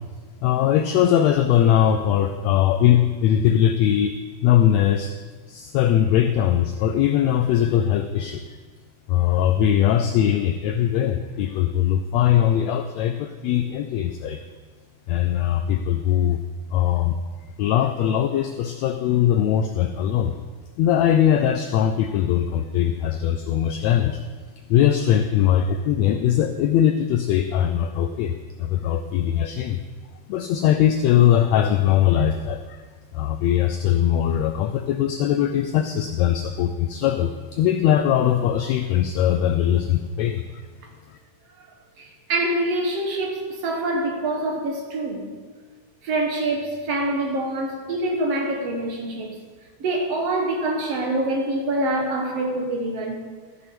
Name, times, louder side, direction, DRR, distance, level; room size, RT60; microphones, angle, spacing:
voice 1, 0.4-5.1 5.5-8.4 9.1-14.4 15.1-16.4 16.7-17.2 17.6-20.3 20.8-24.2 24.7-29.8 30.3-32.8 33.1-40.6, left 10 dB, 85° left, 8 dB, 1.5 m, -20 dB
voice 2, 42.0-45.3 46.0-49.3 49.8-53.2, right 2 dB, 60° right, 1 dB, 2.0 m, -25 dB
14.0 x 6.6 x 5.2 m, 1.4 s
omnidirectional pair, 3.6 m